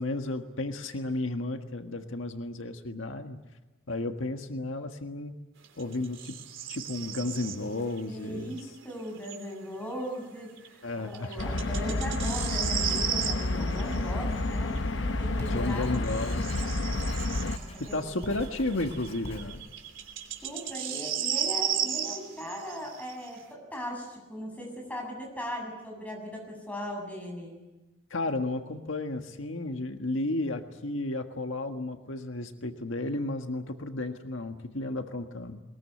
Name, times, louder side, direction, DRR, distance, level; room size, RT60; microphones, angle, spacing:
voice 1, 0.0-3.4 3.9-5.3 5.8-6.3 6.7-8.6 10.8-11.4 15.4-16.5 17.9-19.6 28.1-35.6, left 2 dB, 85° left, 5 dB, 1.6 m, -33 dB
sound 1, 5.6-8.0 8.4-9.5 10.6-10.7 11.1-14.8 15.4-23.3, right 9 dB, 80° right, 3.3 m, -35 dB
voice 2, 8.1-15.9 17.6-18.0 20.4-27.6, equal, 10° left, 0 dB, 7.6 m, -38 dB
sound 2, 11.4-17.6, left 2 dB, 70° left, 1.0 m, -30 dB
Writing, 14.9-20.5, left 1 dB, 35° left, 5.7 m, -44 dB
22.0 x 21.0 x 9.7 m, 1.1 s
head